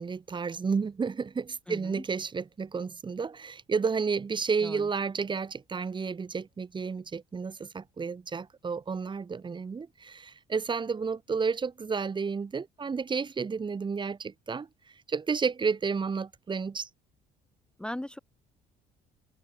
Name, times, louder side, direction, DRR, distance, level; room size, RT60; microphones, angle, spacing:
voice 1, 0.0-14.7 15.1-16.9, right 5 dB, 30° right, 2.0 m, -31 dB
voice 2, 1.7-2.0 4.6-4.9 17.8-18.2, left 1 dB, 5° left, 1.2 m, -38 dB
cardioid pair, 110°, 17 cm